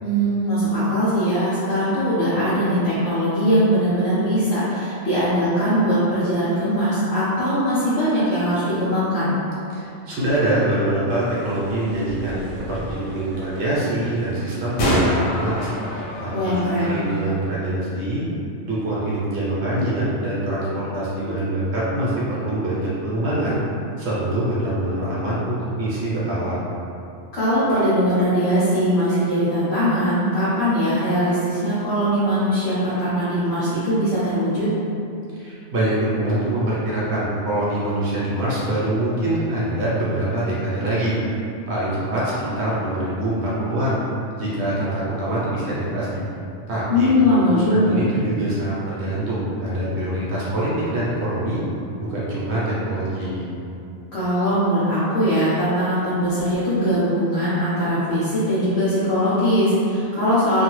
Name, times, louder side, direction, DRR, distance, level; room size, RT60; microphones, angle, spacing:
voice 1, 0.0-9.3 16.3-17.0 27.3-34.7 46.9-48.0 54.1-60.6, equal, 65° left, -13 dB, 1.0 m, -20 dB
voice 2, 9.7-16.6 16.8-18.2 18.7-23.6 24.0-26.6 35.3-41.1 41.7-44.0 44.4-46.2 46.7-47.1 47.4-51.6 52.0-53.5, right 1 dB, 65° right, -8 dB, 1.0 m, -24 dB
sound 1, 11.1-17.3, equal, 90° left, 1.1 m, -28 dB
2.8 x 2.3 x 3.0 m, 2.6 s
omnidirectional pair, 1.3 m